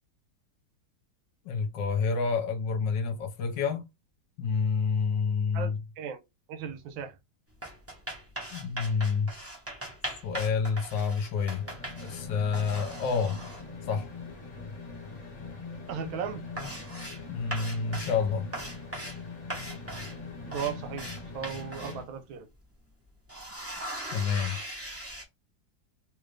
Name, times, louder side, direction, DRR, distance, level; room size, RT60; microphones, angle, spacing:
voice 1, 1.4-3.9 4.4-5.8 8.5-9.3 10.2-11.7 12.0-13.4 13.9-14.1 17.3-18.5 24.1-24.6, left 5 dB, 70° left, 1.4 m, -28 dB
voice 2, 5.5-6.2 6.5-7.1 15.9-16.4 20.4-21.1 21.3-22.5, right 7 dB, 85° right, 1.5 m, -36 dB
sound 1, 7.5-12.3 12.5-13.6 14.8-14.9 15.2-15.6 15.9-16.0 16.3-17.2 17.5-18.2 18.5-19.2 19.5-22.0 22.5-22.6 23.0-25.2, right 1 dB, 10° right, 0.7 m, -40 dB
sound 2, 11.2-22.0, left 4 dB, 45° left, 1.2 m, -42 dB
3.4 x 2.5 x 3.2 m
omnidirectional pair, 2.1 m